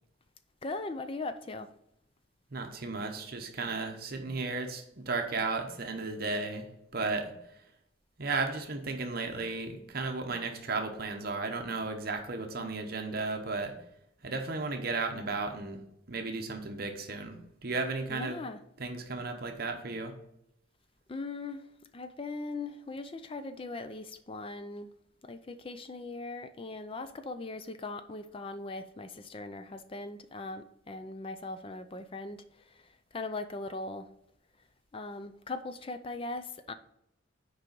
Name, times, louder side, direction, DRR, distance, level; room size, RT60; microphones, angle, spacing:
voice 1, 0.6-1.7 12.6-12.7 18.1-18.6 21.1-21.6 21.9-24.9 25.2-32.4 32.7-32.8 33.1-34.1 34.9-36.7, left 3 dB, 30° left, 0.4 m, -39 dB
voice 2, 2.5-6.7 6.9-7.3 8.2-13.7 14.2-15.8 16.1-18.4 18.8-20.1, right 3 dB, 50° right, 0.8 m, -34 dB
6.6 x 4.8 x 5.2 m
head